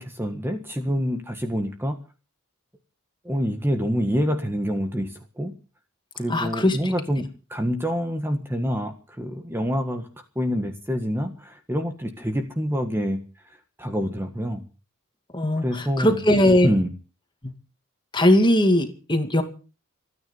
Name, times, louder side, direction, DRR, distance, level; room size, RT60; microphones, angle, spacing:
voice 1, 0.0-2.0 3.2-5.5 6.2-10.1 10.3-13.2 13.8-14.6 15.6-16.2 16.6-16.9, equal, 10° right, 6 dB, 1.6 m, -26 dB
voice 2, 6.3-6.9 15.3-16.7 17.4-17.5 18.1-19.4, left 1 dB, 20° left, 7 dB, 2.3 m, -20 dB
27.0 x 9.7 x 5.5 m, 0.37 s
head